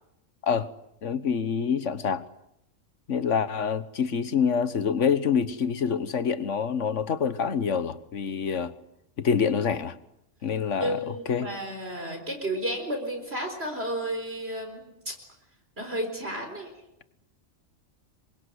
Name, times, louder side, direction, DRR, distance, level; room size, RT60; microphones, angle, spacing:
voice 1, 1.0-2.2 3.1-8.7 9.2-10.0 10.4-11.5, left 6 dB, 70° left, 1.5 m, -26 dB
voice 2, 10.8-15.1 15.8-16.7, right 1 dB, 50° right, 4.5 m, -32 dB
27.0 x 23.0 x 8.1 m
omnidirectional pair, 1.3 m